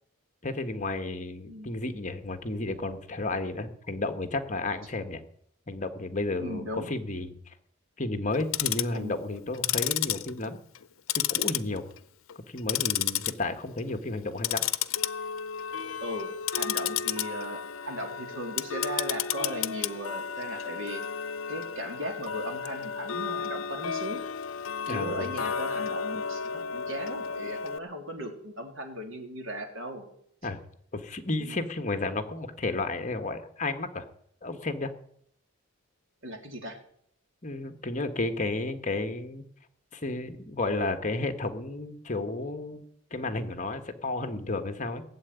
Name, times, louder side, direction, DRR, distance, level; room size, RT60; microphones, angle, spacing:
voice 1, 0.4-5.2 5.7-7.5 8.0-10.6 11.1-11.8 12.5-14.6 24.9-25.3 30.4-30.6 30.9-34.0 34.4-34.9 37.4-39.5 39.9-42.8 43.1-45.0, left 2 dB, 35° left, 8 dB, 1.4 m, -32 dB
voice 2, 6.4-6.9 8.9-9.1 16.0-21.0 21.5-24.2 24.9-30.1 31.4-31.6 36.2-36.8, equal, 65° right, 3 dB, 3.2 m, -37 dB
Tick-tock, 8.3-9.0 9.5-10.8 11.1-12.0 12.3-13.3 13.7-13.9 14.4-27.8, left 9 dB, 80° left, 0.7 m, -32 dB
17.5 x 7.9 x 9.5 m, 0.69 s
head